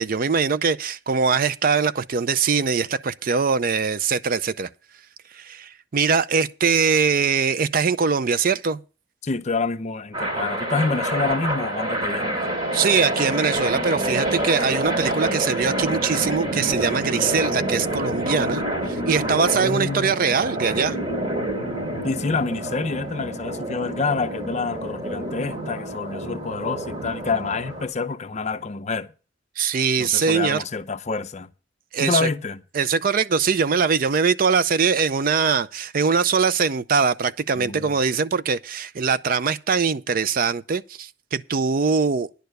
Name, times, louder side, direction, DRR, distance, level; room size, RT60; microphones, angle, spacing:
voice 1, 0.0-4.7 5.3-8.8 12.7-21.0 29.6-30.6 31.9-32.3 32.7-42.3, right 5 dB, 50° right, 0.5 m, -22 dB
voice 2, 9.2-12.5 19.6-20.2 22.0-29.1 30.0-31.5 32.0-32.6 37.5-37.9, left 4 dB, 35° left, 0.6 m, -27 dB
sound 1, 10.1-27.9, right 1 dB, 25° right, 2.8 m, -27 dB
10.5 x 6.8 x 6.6 m
head